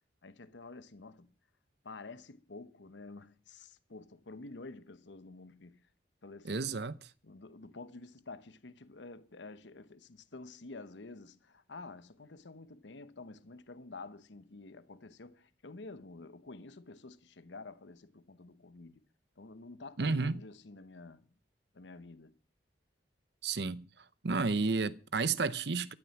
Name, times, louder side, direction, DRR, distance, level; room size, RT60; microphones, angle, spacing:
voice 1, 0.2-1.3 1.8-5.8 6.2-6.7 7.2-19.0 19.4-21.3 21.7-22.3, left 3 dB, 80° left, 1.0 m, -49 dB
voice 2, 6.4-6.9 20.0-20.4 23.4-23.9 24.2-25.9, right 4 dB, 65° right, 0.7 m, -31 dB
13.0 x 12.5 x 5.9 m
head